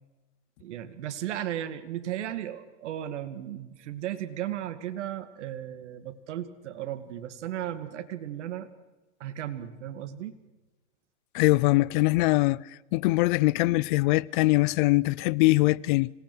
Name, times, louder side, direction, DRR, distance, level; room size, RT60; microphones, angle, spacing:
voice 1, 0.6-8.7 9.2-10.4, right 11 dB, 65° right, 2.2 m, -35 dB
voice 2, 11.3-12.6 12.9-16.1, left 21 dB, 40° left, 0.6 m, -22 dB
26.5 x 18.5 x 6.2 m
hypercardioid pair, 135°, 37 cm